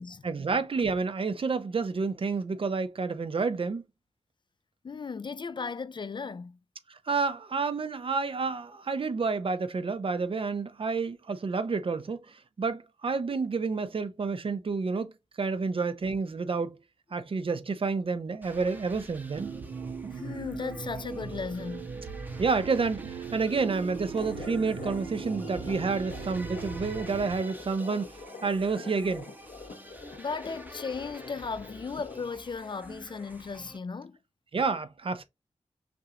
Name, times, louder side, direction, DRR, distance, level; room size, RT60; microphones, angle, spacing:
voice 1, 0.2-3.8 6.9-16.8 17.1-19.5 22.4-28.1 28.4-29.3 34.5-35.2, right 4 dB, 50° right, 0.5 m, -29 dB
voice 2, 4.8-6.6 20.1-21.9 30.2-34.2, left 5 dB, 40° left, 0.3 m, -36 dB
sound 1, 18.4-33.8, right 1 dB, 15° right, 0.8 m, -49 dB
sound 2, 19.3-27.3, right 5 dB, 85° right, 1.0 m, -39 dB
sound 3, 24.1-32.2, left 4 dB, 80° left, 0.9 m, -45 dB
6.0 x 2.4 x 2.8 m
wide cardioid pair, 90°, 12 cm